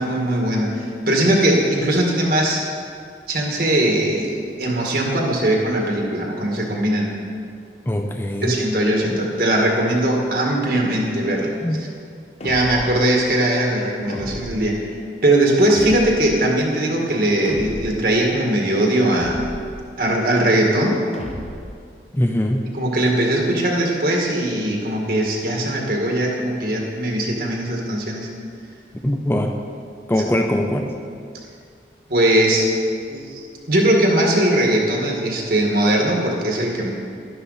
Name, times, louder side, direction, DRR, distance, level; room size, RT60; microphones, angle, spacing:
voice 1, 0.0-2.6 3.3-7.1 8.4-11.5 12.4-14.8 15.2-19.4 20.0-21.0 22.7-28.3 31.3-31.4 32.1-32.7 33.1-36.9, right 1 dB, 55° right, -1 dB, 1.8 m, -20 dB
voice 2, 7.9-8.6 10.8-10.9 11.6-11.8 22.1-22.7 29.0-29.5 30.1-30.8, left 1 dB, 10° left, 3 dB, 0.5 m, -21 dB
sound 1, 12.4-13.1 14.1-14.7 15.7-16.4 17.5-18.1 19.1-19.8 21.1-21.8, equal, 35° left, 0.9 m, -33 dB
12.0 x 11.0 x 4.1 m, 2.2 s
head